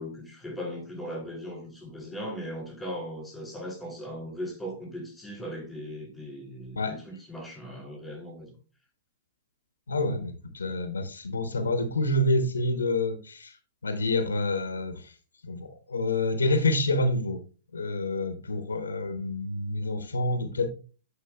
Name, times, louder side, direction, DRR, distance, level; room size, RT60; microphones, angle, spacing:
voice 1, 0.0-8.5, equal, 5° left, 3.3 m, -38 dB
voice 2, 9.9-13.5 13.8-15.0 15.4-17.4 17.7-20.7, left 2 dB, 85° left, 0.9 m, -27 dB
8.5 x 4.8 x 2.3 m
hypercardioid pair, 115°, 0 cm